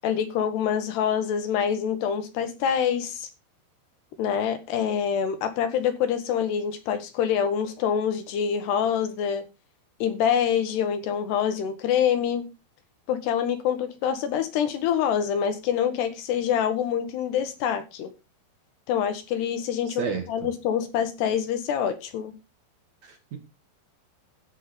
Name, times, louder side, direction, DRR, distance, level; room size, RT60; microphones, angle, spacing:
voice 1, 0.0-3.3 4.2-9.5 10.0-12.5 13.1-18.1 18.9-20.0 20.3-22.3, left 8 dB, 70° left, 3.1 m, -26 dB
voice 2, 19.9-20.5 23.0-23.4, right 6 dB, 50° right, 2.3 m, -32 dB
15.0 x 7.4 x 5.2 m
omnidirectional pair, 5.6 m